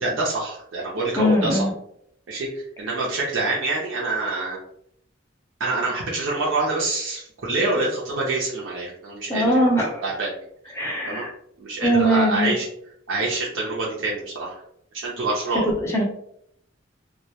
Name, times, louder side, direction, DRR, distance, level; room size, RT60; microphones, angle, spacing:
voice 1, 0.0-1.6 2.3-4.6 5.6-9.5 10.0-10.3 11.1-11.2 11.6-12.7 13.1-14.6 14.9-15.6, right 2 dB, 90° right, -4 dB, 0.6 m, -26 dB
voice 2, 1.2-1.7 9.3-10.0 10.7-11.3 11.8-12.5 15.8-16.0, equal, 15° left, -1 dB, 0.5 m, -21 dB
2.2 x 2.1 x 2.8 m, 0.70 s
head